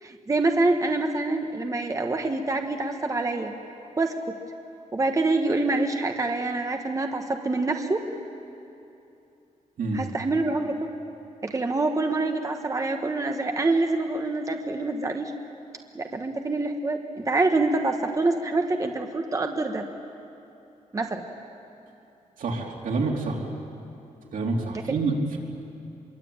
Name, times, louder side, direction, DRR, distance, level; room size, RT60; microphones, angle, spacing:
voice 1, 0.0-3.6 4.0-4.4 4.9-8.0 9.9-10.9 11.4-15.3 15.9-19.9 20.9-21.2 24.9-25.0, right 2 dB, 25° right, 4 dB, 1.3 m, -26 dB
voice 2, 22.4-23.5 24.3-25.4, right 3 dB, 85° right, 0 dB, 3.7 m, -27 dB
26.0 x 23.0 x 8.9 m, 2.8 s
wide cardioid pair, 155°, 14 cm